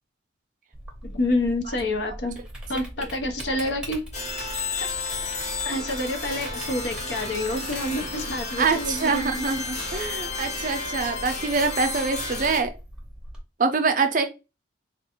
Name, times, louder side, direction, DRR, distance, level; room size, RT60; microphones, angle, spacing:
Typing, 0.7-13.4, right 1 dB, 5° right, 0.7 m, -41 dB
voice 1, 1.0-2.3 2.7-4.0 4.5-4.7 5.6-9.4, left 1 dB, 60° left, 6 dB, 0.6 m, -28 dB
voice 2, 3.5-3.8 8.6-12.7 13.6-14.2, right 4 dB, 45° right, 7 dB, 0.5 m, -25 dB
sound 1, 4.1-12.6, left 3 dB, 35° left, 0.9 m, -32 dB
3.5 x 2.4 x 2.8 m, 0.28 s
head